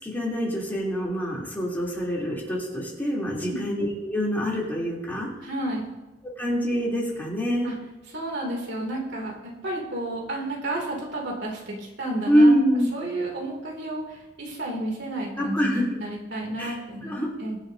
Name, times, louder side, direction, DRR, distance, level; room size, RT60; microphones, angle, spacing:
voice 1, 0.0-5.3 6.4-7.7 12.3-12.9 15.4-15.8 16.6-16.7 17.0-17.3, equal, 10° left, -6 dB, 3.5 m, -24 dB
voice 2, 5.4-5.9 7.6-7.7 8.1-12.5 12.9-17.1 17.4-17.6, right 1 dB, 65° right, -1 dB, 3.0 m, -31 dB
23.0 x 7.9 x 2.9 m, 1.1 s
head